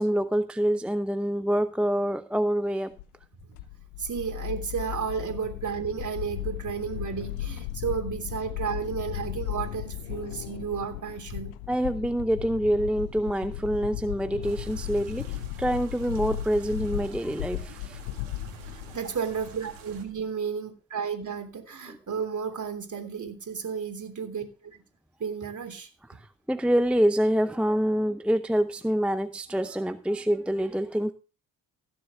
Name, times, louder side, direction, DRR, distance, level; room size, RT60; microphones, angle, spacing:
voice 1, 0.0-3.0 11.7-18.0 21.9-22.0 26.2-31.1, equal, 5° right, 11 dB, 0.7 m, -26 dB
sound 1, 3.0-19.0, left 13 dB, 85° left, 0.8 m, -36 dB
voice 2, 4.0-11.5 18.4-24.8 25.2-26.2, right 6 dB, 40° right, 5 dB, 3.2 m, -33 dB
sound 2, 14.4-20.0, right 6 dB, 90° right, 2.0 m, -48 dB
16.0 x 7.5 x 3.6 m, 0.34 s
hypercardioid pair, 45°, 44 cm